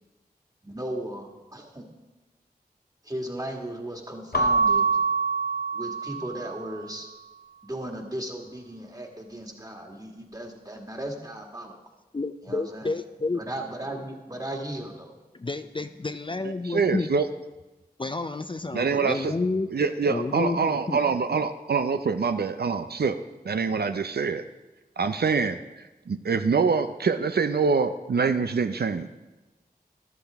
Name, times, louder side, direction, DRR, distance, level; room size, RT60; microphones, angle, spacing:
voice 1, 0.6-1.9 3.0-4.9 5.7-7.1 7.6-11.8 12.4-12.9 13.4-15.1, right 1 dB, 25° right, 2 dB, 1.9 m, -36 dB
Keyboard (musical) / Bell, 4.3-6.8, right 4 dB, 80° left, 0.7 m, -25 dB
voice 2, 12.1-13.4 15.3-17.1 18.0-19.7 20.1-21.0, left 3 dB, 30° left, 9 dB, 0.5 m, -30 dB
voice 3, 16.6-17.3 18.7-19.3 19.7-23.2 23.5-24.4 25.0-25.6 26.1-29.1, right 5 dB, 80° right, 9 dB, 0.5 m, -25 dB
13.5 x 11.5 x 3.5 m, 1.1 s
wide cardioid pair, 50°, 16 cm